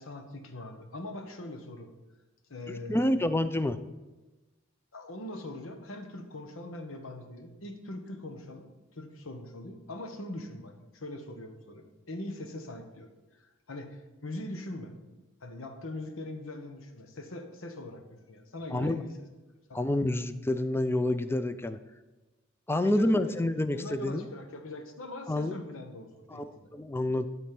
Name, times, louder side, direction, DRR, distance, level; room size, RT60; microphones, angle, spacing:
voice 1, 0.0-1.9 2.5-3.2 3.5-3.6 4.9-13.1 13.4-14.9 15.4-19.3 19.7-19.8 22.7-23.3 23.7-26.7, left 1 dB, 90° left, 6 dB, 1.2 m, -42 dB
voice 2, 2.7-3.8 18.7-19.0 19.7-21.8 22.7-24.3 25.3-25.5 26.3-27.3, left 1 dB, 10° left, 11 dB, 0.4 m, -28 dB
12.5 x 4.3 x 5.9 m, 1.1 s
head